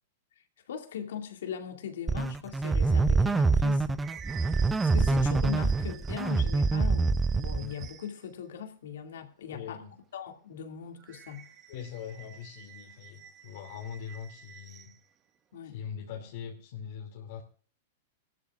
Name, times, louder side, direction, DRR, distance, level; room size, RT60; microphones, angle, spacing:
voice 1, 0.7-4.0 4.8-9.8 10.1-11.5 15.5-15.8, left 8 dB, 80° left, 5 dB, 2.3 m, -40 dB
sound 1, 2.1-7.9, right 3 dB, 10° right, 0.5 m, -25 dB
sound 2, 3.5-8.3 11.0-15.0, right 10 dB, 25° right, 1.1 m, -49 dB
voice 2, 9.5-9.9 11.7-14.9 15.6-17.4, left 8 dB, 65° left, 0 dB, 2.6 m, -42 dB
18.5 x 13.5 x 2.4 m, 0.42 s
hypercardioid pair, 140°, 0 cm